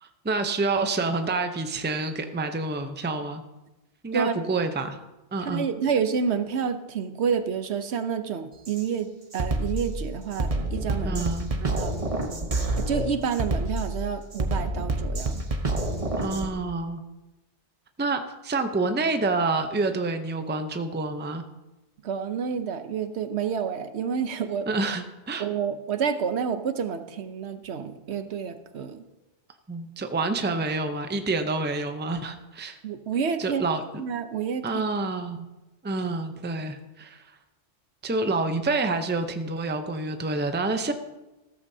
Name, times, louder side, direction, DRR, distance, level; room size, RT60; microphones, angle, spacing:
voice 1, 0.0-3.4 4.0-5.0 5.3-5.7 11.0-11.5 16.2-17.0 18.0-21.4 24.7-25.5 29.7-32.8 33.4-33.8 34.6-35.4 35.8-37.4 38.0-40.9, right 3 dB, 15° right, 7 dB, 0.5 m, -28 dB
voice 2, 5.4-11.2 11.6-11.9 12.8-15.4 22.0-24.8 25.4-29.0 32.8-33.6 34.0-34.8, right 7 dB, 75° right, 9 dB, 1.0 m, -29 dB
Drum kit, 8.6-8.8 9.3-16.5, right 2 dB, 35° right, 1.0 m, -28 dB
15.0 x 13.5 x 2.7 m, 1.0 s
omnidirectional pair, 1.1 m